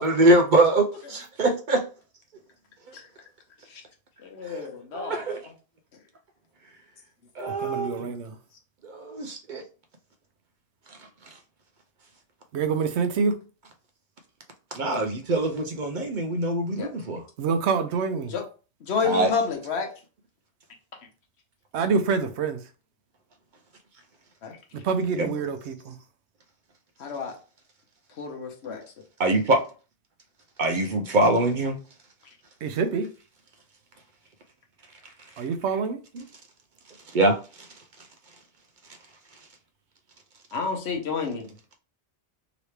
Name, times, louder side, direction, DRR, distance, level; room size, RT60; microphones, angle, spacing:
voice 1, 0.0-1.8 4.5-5.4 7.4-8.1 8.9-9.6 14.7-17.2 19.0-19.3 25.2-25.3 29.2-29.6 30.6-31.8 37.1-37.4, right 2 dB, 60° right, 0.6 m, -23 dB
voice 2, 4.2-5.3 16.8-16.9 18.3-18.4 18.8-19.9 24.4-24.6 27.0-27.3 28.2-28.8 40.5-41.5, left 5 dB, 75° left, 1.1 m, -29 dB
voice 3, 7.6-8.4 12.5-13.4 17.4-18.3 21.7-22.6 24.8-26.0 32.6-33.1 35.4-36.0, right 5 dB, 80° right, 0.9 m, -26 dB
3.0 x 2.9 x 3.1 m
omnidirectional pair, 1.1 m